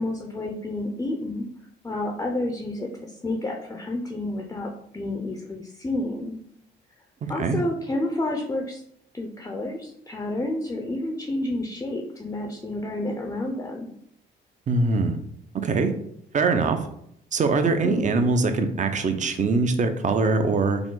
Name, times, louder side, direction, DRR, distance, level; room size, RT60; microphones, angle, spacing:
voice 1, 0.0-1.5 1.8-6.4 7.3-8.8 9.1-13.9 17.8-18.2, left 1 dB, 15° left, 2 dB, 0.5 m, -30 dB
voice 2, 7.2-7.6 14.7-15.2 15.6-15.9 16.3-16.8 17.3-20.8, right 3 dB, 40° right, 8 dB, 0.6 m, -22 dB
4.8 x 2.0 x 3.8 m, 0.71 s
cardioid pair, 90°, 20 cm